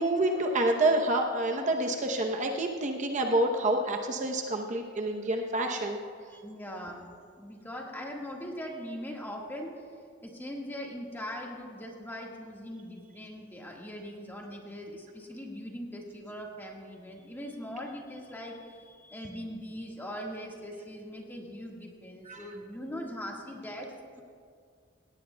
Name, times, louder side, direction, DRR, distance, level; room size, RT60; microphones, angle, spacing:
voice 1, 0.0-6.0 22.3-22.4, right 1 dB, 40° right, 3 dB, 0.8 m, -28 dB
voice 2, 6.3-7.1 7.4-24.2, equal, 10° left, -1 dB, 1.6 m, -41 dB
17.5 x 17.5 x 2.2 m, 2.1 s
head